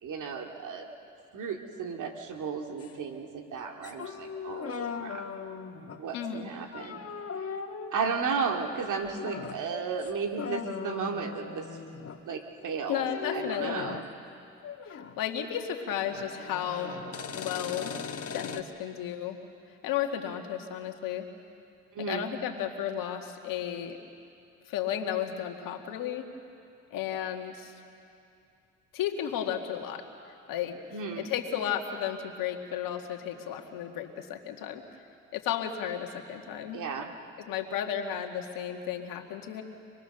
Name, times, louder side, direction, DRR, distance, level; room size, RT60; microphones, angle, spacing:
voice 1, 0.0-0.9 1.3-5.2 6.0-7.0 7.9-11.7 12.3-14.0 21.9-22.3 30.9-31.3 36.7-37.1, right 5 dB, 65° right, 3 dB, 2.5 m, -34 dB
sound 1, 2.8-3.0 3.8-6.1 6.7-8.0 9.1-9.6 10.0-10.1 10.4-12.2 13.0-14.1 14.6-15.2 15.4-18.6, left 6 dB, 45° left, 1.5 m, -39 dB
voice 2, 6.1-6.4 12.9-14.0 14.9-17.0 17.3-18.0 18.3-19.4 19.8-21.3 22.1-24.0 24.7-26.3 26.9-27.7 28.9-30.0 30.5-30.8 31.2-34.8 35.3-36.8 37.5-39.6, left 9 dB, 75° left, 3 dB, 1.9 m, -33 dB
26.0 x 20.5 x 6.8 m, 2.5 s
supercardioid pair, 65°, 33 cm